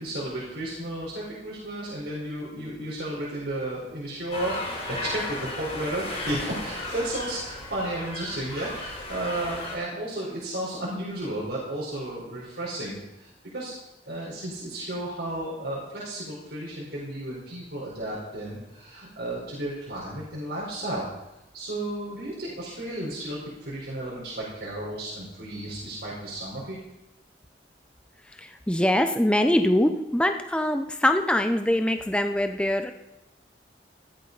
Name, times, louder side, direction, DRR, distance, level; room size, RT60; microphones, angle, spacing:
voice 1, 0.0-13.7 14.0-21.1 21.5-26.8, right 1 dB, 70° right, -6 dB, 4.6 m, -33 dB
sound 1, 4.3-9.8, left 2 dB, 35° left, 4.3 m, -35 dB
voice 2, 28.4-32.9, left 1 dB, 5° left, 6 dB, 0.7 m, -23 dB
16.0 x 13.5 x 4.1 m, 0.96 s
head